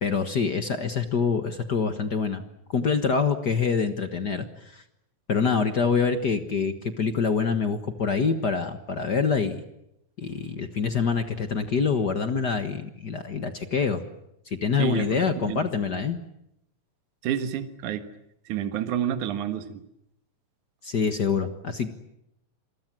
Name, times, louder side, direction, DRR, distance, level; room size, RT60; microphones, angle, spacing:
voice 1, 0.0-2.4 2.7-4.8 5.3-9.6 10.2-14.0 14.5-16.2 20.8-21.9, left 5 dB, 50° left, 8 dB, 1.3 m, -25 dB
voice 2, 14.8-15.7 17.2-18.1 18.5-19.8, right 9 dB, 70° right, 9 dB, 2.9 m, -29 dB
27.5 x 23.0 x 7.6 m, 0.80 s
omnidirectional pair, 3.7 m